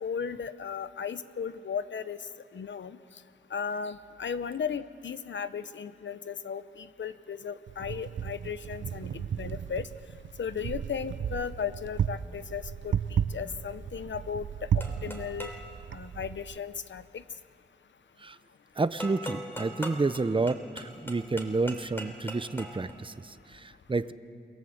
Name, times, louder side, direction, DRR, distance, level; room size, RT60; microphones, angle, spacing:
voice 1, 0.0-2.2 2.5-3.0 3.5-9.9 10.4-14.5 14.7-15.5 15.9-17.2, left 6 dB, 75° left, 13 dB, 0.8 m, -36 dB
Wind, 7.7-16.6, right 8 dB, 80° right, 0.6 m, -34 dB
sound 1, 14.8-15.7 19.0-22.9, equal, 10° left, 3.5 m, -41 dB
voice 2, 18.8-24.1, right 3 dB, 25° right, 13 dB, 0.8 m, -30 dB
28.0 x 21.0 x 7.9 m, 2.5 s
cardioid pair, 65°, 19 cm